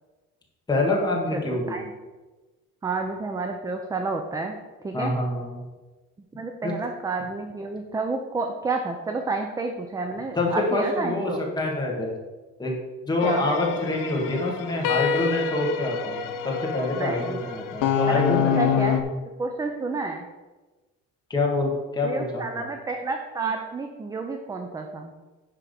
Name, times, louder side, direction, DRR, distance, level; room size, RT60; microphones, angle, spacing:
voice 1, 0.7-1.7 4.9-5.6 6.6-6.7 10.3-12.1 12.6-12.7 13.0-18.8 21.3-22.7, left 2 dB, 15° left, -1 dB, 1.7 m, -26 dB
voice 2, 1.3-1.8 2.8-4.6 4.8-5.1 6.4-11.4 13.2-13.5 16.9-17.4 18.1-19.1 19.4-20.3 22.0-25.1, right 3 dB, 10° right, 4 dB, 0.4 m, -30 dB
sound 1, 13.2-19.0, left 8 dB, 90° left, 0.9 m, -27 dB
10.0 x 3.6 x 6.8 m, 1.2 s
cardioid pair, 175°, 31 cm